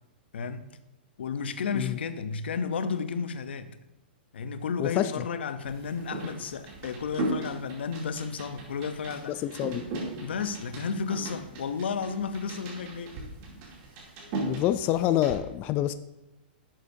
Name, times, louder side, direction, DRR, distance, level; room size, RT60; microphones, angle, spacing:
voice 1, 1.2-3.8 4.3-9.4 10.2-13.2, left 5 dB, 85° left, 0.7 m, -32 dB
voice 2, 4.8-5.1 9.3-9.9 14.4-15.9, left 13 dB, 30° left, 0.3 m, -27 dB
sound 1, 5.6-15.4, right 2 dB, 45° right, 2.7 m, -38 dB
11.0 x 7.4 x 2.7 m
hypercardioid pair, 140°, 6 cm